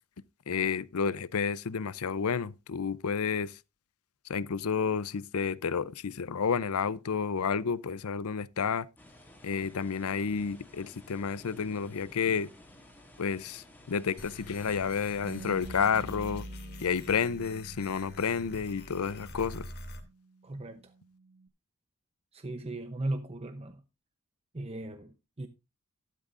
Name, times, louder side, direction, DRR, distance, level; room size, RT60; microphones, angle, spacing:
voice 1, 0.5-3.6 4.3-8.9 9.4-12.5 13.2-16.5 16.8-19.7, left 6 dB, 75° left, 0.6 m, -30 dB
sound 1, 9.0-15.8, left 1 dB, 10° left, 2.3 m, -54 dB
sound 2, 14.2-20.0, left 1 dB, 45° left, 2.6 m, -45 dB
Bass guitar, 15.2-21.5, right 3 dB, 85° right, 1.4 m, -50 dB
voice 2, 20.4-20.8 22.3-23.8 24.5-25.5, right 2 dB, 25° right, 0.8 m, -37 dB
13.5 x 12.0 x 2.5 m
head